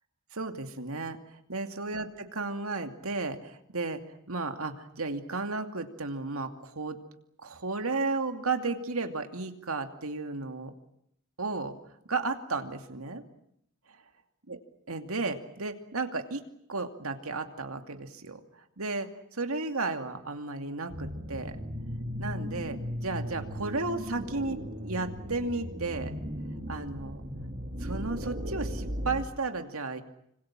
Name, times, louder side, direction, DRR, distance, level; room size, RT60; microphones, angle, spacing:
voice 1, 0.3-1.2 1.5-4.0 4.3-7.0 7.4-10.7 11.4-11.8 12.1-13.2 14.5-14.6 14.9-16.4 16.7-18.4 18.8-21.6 22.2-26.2 26.7-27.2 27.8-30.0, right 3 dB, 85° right, 6 dB, 2.6 m, -33 dB
sound 1, 20.9-29.2, equal, 40° right, 3.3 m, -37 dB
26.5 x 26.0 x 7.6 m, 0.75 s
head